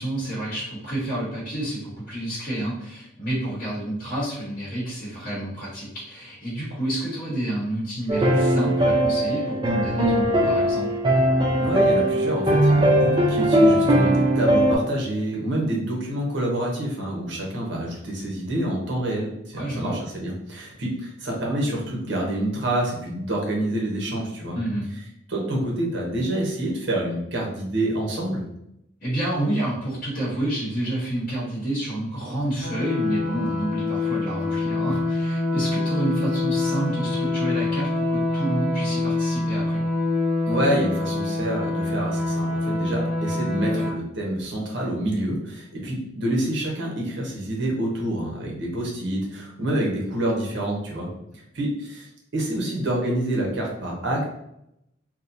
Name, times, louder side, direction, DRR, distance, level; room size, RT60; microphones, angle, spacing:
voice 1, 0.0-10.9 19.5-20.0 24.5-24.9 29.0-39.8 43.7-43.8, right 1 dB, 45° left, -10 dB, 1.0 m, -29 dB
sound 1, 8.1-14.8, right 1 dB, 25° right, 0.4 m, -19 dB
voice 2, 11.6-24.6 25.3-28.5 40.5-51.1 51.5-54.2, right 1 dB, 60° right, -2 dB, 0.8 m, -27 dB
sound 2, 32.6-43.9, left 2 dB, 90° left, 0.7 m, -25 dB
2.8 x 2.1 x 2.6 m, 0.80 s
head